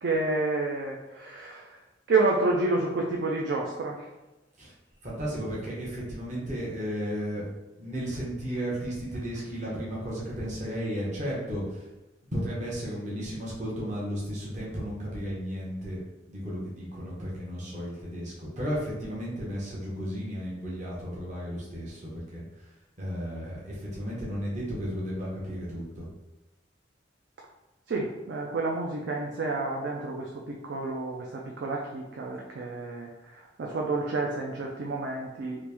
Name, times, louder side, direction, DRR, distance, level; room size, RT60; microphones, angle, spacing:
voice 1, 0.0-1.8 2.1-4.1 27.9-35.6, right 3 dB, 65° right, -1 dB, 0.4 m, -29 dB
voice 2, 5.0-7.4 7.8-11.9 12.3-16.0 16.3-22.7 23.0-26.1, equal, 45° right, -6 dB, 0.9 m, -34 dB
3.1 x 2.5 x 3.3 m, 1.0 s
head